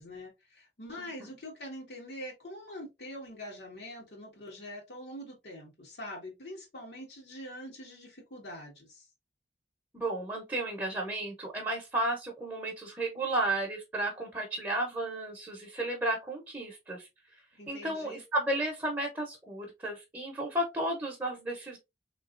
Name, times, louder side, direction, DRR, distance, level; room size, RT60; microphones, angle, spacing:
voice 1, 0.0-9.1 17.6-18.2, left 1 dB, 75° left, 1.6 m, -44 dB
voice 2, 9.9-17.1 17.7-21.8, right 1 dB, 15° right, 0.8 m, -33 dB
3.8 x 3.0 x 2.5 m
head